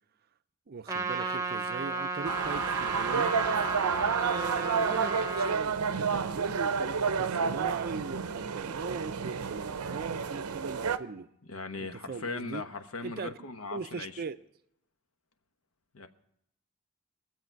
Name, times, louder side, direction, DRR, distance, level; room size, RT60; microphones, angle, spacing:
voice 1, 0.7-3.4 4.2-5.7 6.1-11.3 11.8-12.6 13.0-13.3 13.7-14.4, right 5 dB, 45° right, 0.5 m, -39 dB
Trumpet, 0.9-5.6, right 3 dB, 15° right, 0.9 m, -34 dB
sound 1, 2.2-11.0, right 6 dB, 90° right, 0.6 m, -30 dB
voice 2, 11.5-14.2 15.9-16.1, left 3 dB, 70° left, 1.0 m, -39 dB
22.5 x 7.6 x 4.5 m
head